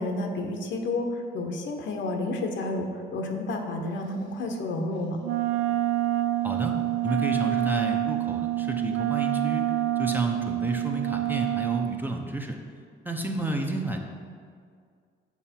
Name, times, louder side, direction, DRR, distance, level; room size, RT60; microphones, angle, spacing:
voice 1, 0.0-5.2, left 2 dB, 70° left, 3 dB, 0.9 m, -30 dB
Wind instrument woodwind instrument, 5.2-12.0, right 14 dB, 75° right, 0.4 m, -27 dB
voice 2, 6.4-6.8 7.0-9.7 10.0-12.6 13.0-14.0, right 1 dB, 10° right, 2 dB, 0.7 m, -31 dB
7.2 x 4.7 x 4.4 m, 2.1 s
cardioid pair, 90°, 20 cm